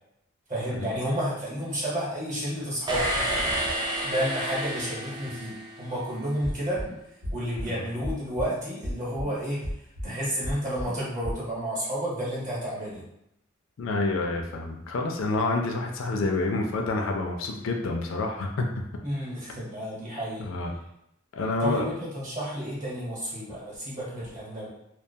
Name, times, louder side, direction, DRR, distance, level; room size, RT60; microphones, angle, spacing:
voice 1, 0.5-3.1 4.0-6.8 7.3-9.6 10.0-13.0 19.0-20.5 21.6-24.7, equal, 35° right, -7 dB, 1.0 m, -31 dB
sound 1, 2.9-6.0, right 1 dB, 20° right, 0.3 m, -30 dB
sound 2, 6.4-6.9 7.2-7.7 8.0-8.5 8.8-9.3 9.6-10.1 10.4-10.9 11.2-11.3, equal, 85° right, 0.9 m, -32 dB
voice 2, 13.8-18.7 20.4-20.7 21.3-21.9, left 3 dB, 65° left, 3 dB, 0.4 m, -28 dB
2.3 x 2.2 x 2.7 m, 0.80 s
head